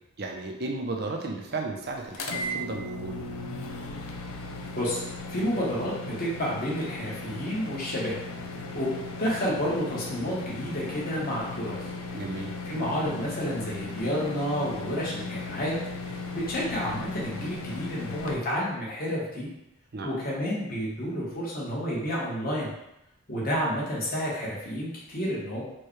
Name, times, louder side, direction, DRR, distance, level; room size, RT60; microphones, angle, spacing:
voice 1, 0.2-3.2 12.1-12.5 19.9-20.1, right 3 dB, 50° right, 1 dB, 0.5 m, -34 dB
sound 1, 2.1-18.3, left 2 dB, 75° left, 0.5 m, -37 dB
voice 2, 5.3-8.2 8.7-8.9 9.2-11.9 12.6-19.5 20.0-22.7 23.3-25.6, equal, 40° left, -6 dB, 1.1 m, -30 dB
4.5 x 2.2 x 3.1 m, 0.85 s
head